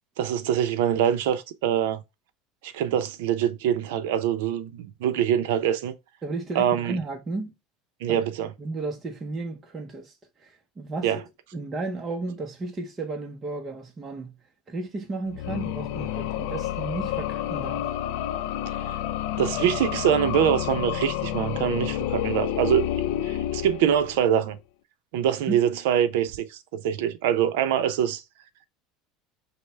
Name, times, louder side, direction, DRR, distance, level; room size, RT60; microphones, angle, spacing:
voice 1, 0.2-2.0 2.6-5.9 6.5-7.0 8.0-8.5 11.0-11.2 19.4-22.9 23.2-24.6 25.1-26.6 26.8-28.2, right 9 dB, 80° right, 0.6 m, -24 dB
voice 2, 6.2-7.5 8.1-8.2 8.6-11.2 11.5-14.4 14.7-17.9 25.5-25.6, right 3 dB, 20° right, 0.7 m, -33 dB
sound 1, 15.3-24.3, left 12 dB, 70° left, 0.4 m, -29 dB
5.3 x 2.1 x 3.3 m
supercardioid pair, 135°, 0 cm